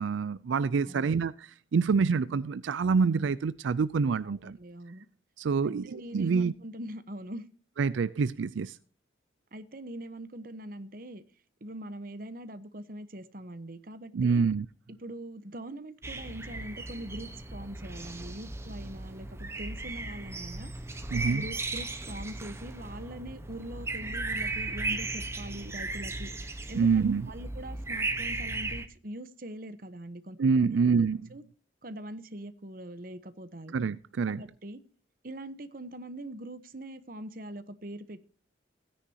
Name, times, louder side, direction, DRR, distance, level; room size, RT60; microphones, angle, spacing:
voice 1, 0.0-4.6 5.4-6.5 7.8-8.8 14.1-14.7 21.1-21.4 26.8-27.2 30.4-31.3 33.7-34.4, right 5 dB, 85° right, 0.4 m, -26 dB
voice 2, 4.2-5.1 5.6-7.4 9.5-11.2 11.6-14.4 15.0-20.7 21.1-26.3 26.7-30.7 31.3-31.4 31.8-33.7 34.3-34.8 35.2-38.2, right 1 dB, 50° right, 1.0 m, -42 dB
sound 1, 16.0-28.9, right 2 dB, 15° right, 1.1 m, -36 dB
16.0 x 9.9 x 2.8 m
head